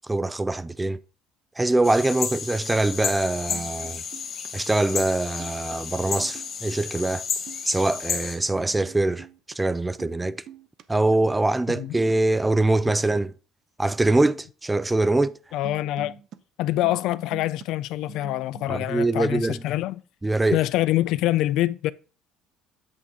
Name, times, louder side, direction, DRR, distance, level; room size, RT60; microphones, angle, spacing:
voice 1, 0.1-1.0 1.6-4.0 4.5-7.3 7.7-9.3 9.6-10.4 10.9-13.3 13.8-15.3 18.7-19.6 20.2-20.6, right 2 dB, 10° right, 0.4 m, -23 dB
sound 1, 1.8-8.4, left 6 dB, 40° left, 1.8 m, -32 dB
sound 2, 3.2-3.3 3.5-4.5 4.8-5.1 5.4-5.7 6.2-7.0 7.3-8.3 8.5-9.6 9.8-10.2 10.5-10.8 11.3-12.2 12.6-12.8 13.1-13.2 15.6-16.4 16.7-17.7 17.9-18.8, right 9 dB, 55° right, 0.6 m, -45 dB
voice 2, 15.5-16.1 16.6-20.0 20.5-21.9, left 15 dB, 70° left, 0.4 m, -25 dB
8.3 x 6.3 x 3.6 m
cardioid pair, 110°, 0 cm